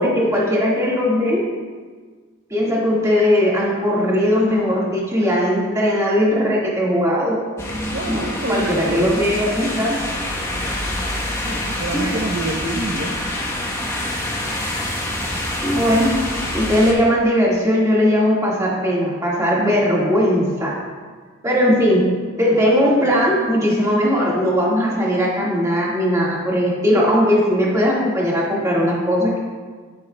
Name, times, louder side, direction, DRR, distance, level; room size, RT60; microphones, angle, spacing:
voice 1, 0.0-1.4 2.5-7.4 8.1-10.0 11.9-12.2 15.6-16.1 16.5-20.7 21.4-22.1 22.4-29.4, equal, 15° right, -5 dB, 1.7 m, -18 dB
sound 1, 7.6-16.9, left 1 dB, 15° left, 1.0 m, -26 dB
voice 2, 7.9-9.1 11.4-13.1, right 1 dB, 45° right, 5 dB, 0.8 m, -27 dB
10.5 x 9.8 x 2.2 m, 1.5 s
head